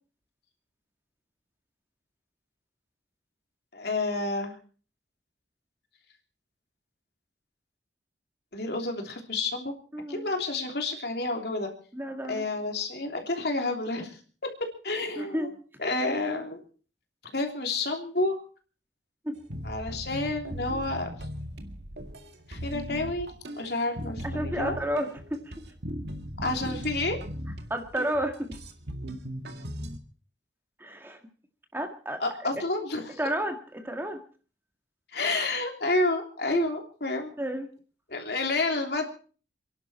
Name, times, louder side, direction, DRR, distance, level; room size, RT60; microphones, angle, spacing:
voice 1, 3.7-4.6 8.5-9.7 10.1-11.7 12.3-14.2 14.4-14.5 14.8-15.5 15.8-16.6 17.3-18.4 19.6-21.1 22.5-23.3 23.6-24.7 26.4-27.2 32.2-33.2 35.1-37.3 38.1-39.1, left 2 dB, 65° left, 3 dB, 3.2 m, -29 dB
voice 2, 9.9-10.3 11.9-12.5 15.2-15.5 19.3-19.4 24.2-25.4 27.7-28.6 30.8-31.2 31.7-32.5 33.2-34.2 36.5-36.7 37.4-37.7, right 1 dB, 10° right, 5 dB, 1.8 m, -31 dB
sound 1, 19.5-30.0, equal, 70° right, 2.1 m, -38 dB
28.5 x 11.5 x 4.3 m, 0.41 s
head